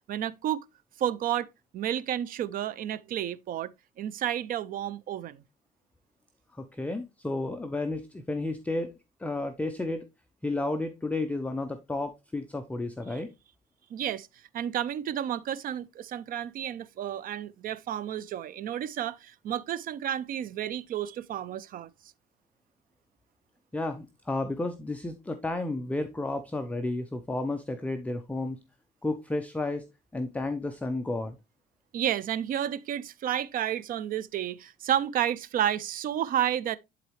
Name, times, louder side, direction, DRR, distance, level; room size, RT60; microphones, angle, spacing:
voice 1, 0.1-0.6 1.0-1.5 1.7-3.7 4.0-5.4 13.1-13.2 13.9-14.3 14.5-21.9 31.9-36.8, right 10 dB, 55° right, 0.5 m, -31 dB
voice 2, 6.5-8.9 9.2-10.1 10.4-13.3 23.7-28.6 29.0-29.8 30.1-31.4, left 2 dB, 10° left, 0.5 m, -32 dB
11.0 x 3.9 x 3.1 m
cardioid pair, 140°, 17 cm